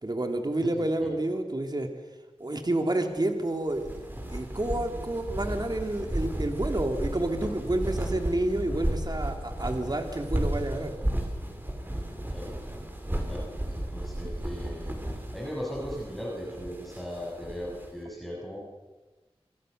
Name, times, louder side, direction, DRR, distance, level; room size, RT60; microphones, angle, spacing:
voice 1, 0.0-1.9 2.4-4.0 4.3-10.9, right 1 dB, 40° right, 5 dB, 2.9 m, -29 dB
voice 2, 0.8-1.1 12.3-12.5 13.2-15.0 15.3-18.6, equal, ahead, -3 dB, 7.1 m, -38 dB
sound 1, 3.7-17.9, right 1 dB, 20° right, 5.9 m, -33 dB
27.0 x 25.0 x 6.7 m, 1.2 s
wide cardioid pair, 55°, 11 cm